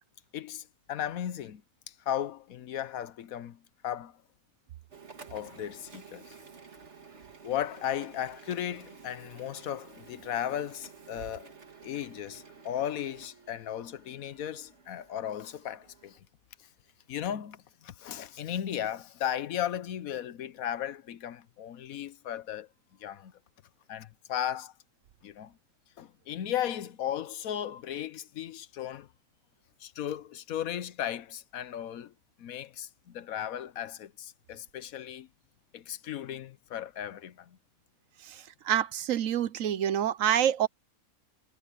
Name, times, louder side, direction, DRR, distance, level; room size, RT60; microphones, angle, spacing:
voice 1, 0.3-1.6 1.9-4.2 5.3-6.2 7.4-11.5 11.8-16.2 17.1-22.7 23.0-23.3 23.9-24.7 25.2-25.5 26.0-29.1 29.8-32.1 32.4-35.3 35.7-37.6, left 10 dB, 75° left, 1.2 m, -36 dB
Printer, 4.9-16.2, right 5 dB, 50° right, 2.4 m, -52 dB
voice 2, 38.7-40.7, right 10 dB, 65° right, 1.1 m, -26 dB
omnidirectional pair, 1.5 m